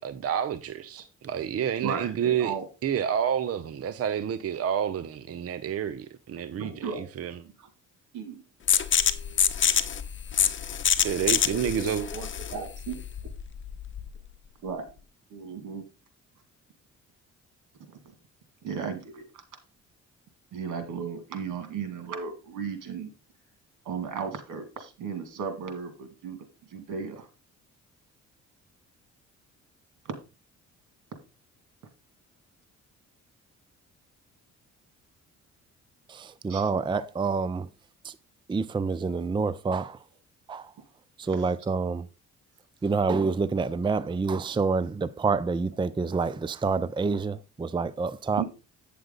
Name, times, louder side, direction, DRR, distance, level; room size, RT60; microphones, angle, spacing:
voice 1, 0.0-2.5 2.8-7.4 11.0-12.1, right 9 dB, 50° right, 0.7 m, -29 dB
voice 2, 1.8-2.6 6.6-7.0 8.1-8.4 8.8-8.9 10.3-10.5 11.5-13.0 14.6-14.9 15.3-15.8 18.6-19.3 20.5-23.1 23.8-26.4 26.7-27.3 36.5-37.0 41.3-41.4 48.4-48.5, right 6 dB, 80° right, 2.4 m, -35 dB
sound 1, 8.7-14.2, left 8 dB, 40° left, 1.0 m, -26 dB
voice 3, 36.1-37.7 38.0-38.2 38.5-40.0 40.5-40.7 41.2-42.1 42.8-48.4, right 4 dB, 15° right, 0.5 m, -27 dB
8.9 x 6.8 x 3.8 m
cardioid pair, 90°, 30 cm